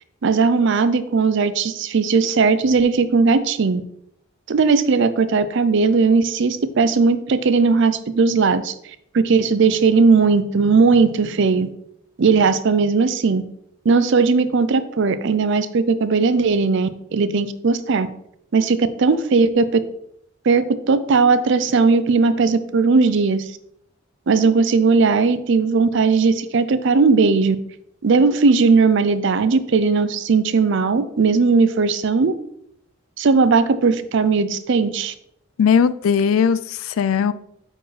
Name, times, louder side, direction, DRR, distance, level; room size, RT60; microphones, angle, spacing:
voice 1, 0.2-3.8 4.5-8.7 9.1-11.7 12.2-13.4 13.9-18.1 18.5-19.8 20.5-23.5 24.3-27.6 28.0-32.3 33.2-35.1, right 4 dB, 60° right, 13 dB, 0.5 m, -17 dB
voice 2, 35.6-37.3, left 7 dB, 80° left, 16 dB, 0.3 m, -18 dB
8.4 x 4.5 x 3.3 m, 0.75 s
head